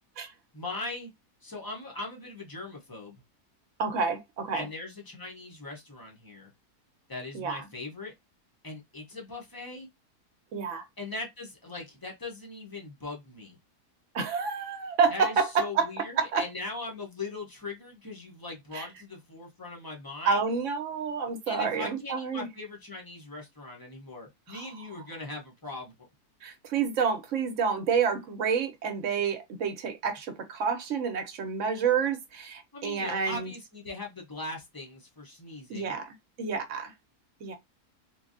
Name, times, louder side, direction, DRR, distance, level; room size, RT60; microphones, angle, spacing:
voice 1, 0.5-1.1 1.4-3.2 4.5-6.5 7.1-8.1 8.6-9.9 11.0-13.6 15.1-20.5 21.5-25.9 32.7-36.0, left 2 dB, 25° left, 0.5 m, -40 dB
voice 2, 3.8-4.7 7.3-7.7 10.5-10.8 14.1-15.9 16.2-16.4 18.7-18.9 20.2-22.5 24.5-24.7 26.4-33.5 35.7-36.9 37.4-37.5, right 6 dB, 60° right, 0.9 m, -29 dB
3.3 x 2.2 x 2.5 m
omnidirectional pair, 1.7 m